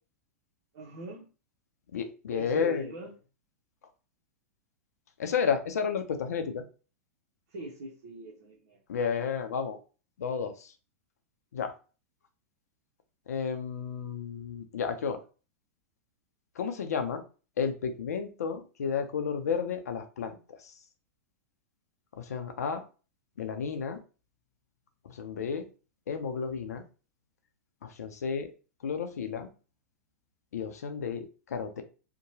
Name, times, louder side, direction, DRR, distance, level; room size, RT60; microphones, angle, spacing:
voice 1, 0.7-1.3 2.3-3.1 7.5-8.8, right 1 dB, 65° right, -2 dB, 0.8 m, -41 dB
voice 2, 1.9-2.9 5.2-6.6 8.9-9.8 10.2-10.7 11.5-11.7 13.3-15.2 16.6-17.2 17.6-20.8 22.2-22.8 23.4-24.0 25.0-25.7 26.1-26.8 27.8-28.5 28.8-29.5 30.5-31.8, left 6 dB, 80° left, 7 dB, 0.5 m, -32 dB
2.8 x 2.2 x 2.7 m, 0.35 s
hypercardioid pair, 110°, 8 cm